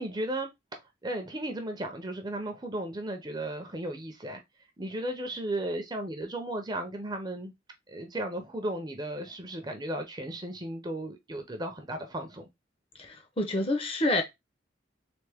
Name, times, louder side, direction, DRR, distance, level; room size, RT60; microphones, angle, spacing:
voice 1, 0.0-4.4 4.8-7.5 7.9-12.5, right 1 dB, 20° right, 0.6 m, -35 dB
voice 2, 13.0-14.2, left 1 dB, 30° left, 0.8 m, -28 dB
3.5 x 3.5 x 3.4 m
head